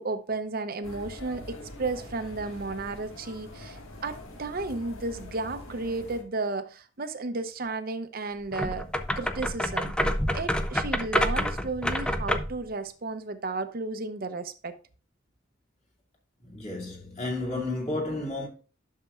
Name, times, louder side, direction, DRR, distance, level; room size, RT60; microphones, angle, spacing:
voice 1, 0.0-8.8 9.2-14.7, right 3 dB, 45° right, 0.7 m, -33 dB
sound 1, 0.8-6.2, left 1 dB, 85° left, 1.6 m, -44 dB
sound 2, 8.5-12.6, equal, 5° left, 0.4 m, -28 dB
voice 2, 16.4-18.5, left 2 dB, 35° left, 2.2 m, -32 dB
11.0 x 6.6 x 2.4 m
head